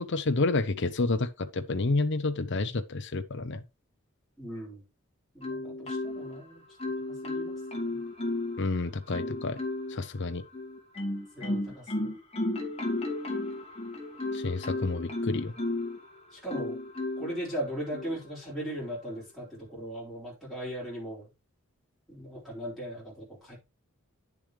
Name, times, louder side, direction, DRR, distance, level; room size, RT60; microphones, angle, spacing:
voice 1, 0.0-3.6 8.6-9.6 9.9-10.4 14.3-15.5, left 3 dB, 55° left, 0.7 m, -29 dB
voice 2, 4.4-4.8 5.3-6.6 7.2-8.0 11.4-12.1 16.3-16.7 17.2-21.3 22.1-23.6, equal, ahead, 4.1 m, -38 dB
Marimba xylophone, 5.4-6.4 6.8-8.6 9.1-10.0 10.5-16.0 16.5-17.4 17.9-18.2, left 2 dB, 30° left, 2.0 m, -33 dB
9.6 x 7.0 x 3.2 m
head